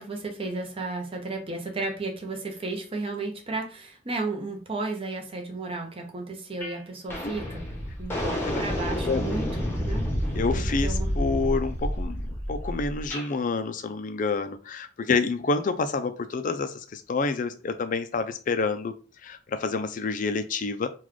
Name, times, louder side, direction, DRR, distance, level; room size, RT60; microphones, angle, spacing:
voice 1, 0.0-7.7 8.0-10.1 10.5-11.1, right 3 dB, 30° right, 3 dB, 0.8 m, -33 dB
sound 1, 6.6-6.8 7.1-13.3, equal, 15° left, 0.9 m, -29 dB
voice 2, 10.4-12.2 12.5-18.9 19.2-20.9, left 4 dB, 45° left, 10 dB, 0.4 m, -28 dB
3.9 x 2.4 x 3.1 m, 0.36 s
head